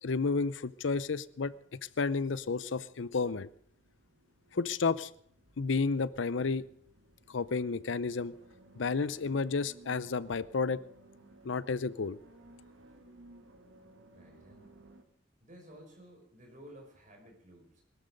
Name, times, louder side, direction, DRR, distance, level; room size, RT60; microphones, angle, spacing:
voice 1, 0.0-3.5 4.5-5.1 5.6-6.6 7.3-8.3 8.8-10.8 11.4-12.2, left 4 dB, 70° left, 18 dB, 0.6 m, -31 dB
sound 1, 1.1-15.0, right 1 dB, 85° right, 2.1 m, -59 dB
voice 2, 14.1-14.8 15.4-17.8, equal, 40° right, 1 dB, 5.6 m, -54 dB
21.5 x 13.0 x 5.2 m, 0.66 s
head